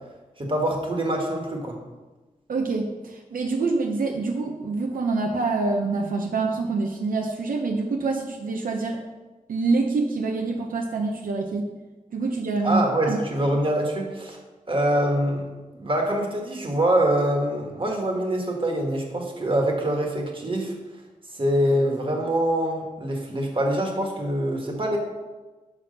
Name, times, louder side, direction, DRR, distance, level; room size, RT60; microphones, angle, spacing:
voice 1, 0.4-1.8 12.6-14.4 14.7-15.5 15.7-20.7 21.3-25.0, right 1 dB, 40° right, 1 dB, 1.5 m, -24 dB
voice 2, 2.5-2.9 3.3-9.0 9.5-11.6 12.1-12.8 13.1-13.2, right 3 dB, 85° right, 2 dB, 0.8 m, -25 dB
6.2 x 5.9 x 5.2 m, 1.2 s
wide cardioid pair, 105°, 14 cm